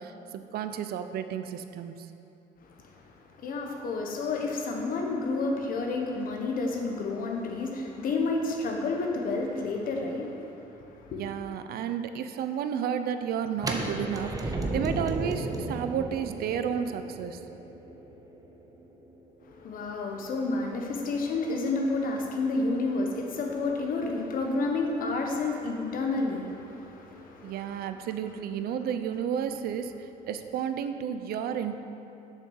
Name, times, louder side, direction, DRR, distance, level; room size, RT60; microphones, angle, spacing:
voice 1, 0.0-1.9 11.1-17.4 27.4-31.8, right 8 dB, 65° right, 9 dB, 0.6 m, -32 dB
voice 2, 2.6-11.2 19.4-27.9, left 3 dB, 55° left, 2 dB, 1.2 m, -30 dB
sound 1, 13.6-19.4, right 2 dB, 20° right, 0.9 m, -34 dB
7.2 x 6.5 x 5.6 m, 2.8 s
cardioid pair, 110°, 17 cm